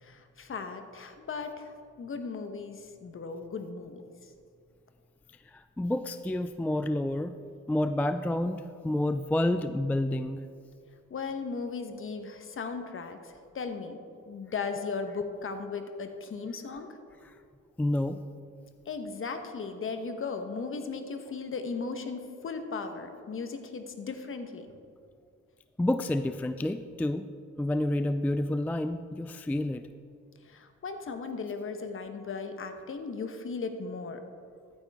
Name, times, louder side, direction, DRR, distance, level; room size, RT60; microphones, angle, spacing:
voice 1, 0.0-4.0 11.1-14.0 14.3-16.9 18.9-24.7 30.4-34.2, left 4 dB, 45° left, 7 dB, 1.2 m, -37 dB
voice 2, 5.5-7.4 7.7-10.4 17.2-17.3 17.8-18.2 25.8-27.3 27.6-29.8, left 1 dB, 5° left, 10 dB, 0.3 m, -29 dB
14.0 x 9.1 x 3.6 m, 2.3 s
cardioid pair, 90°, 30 cm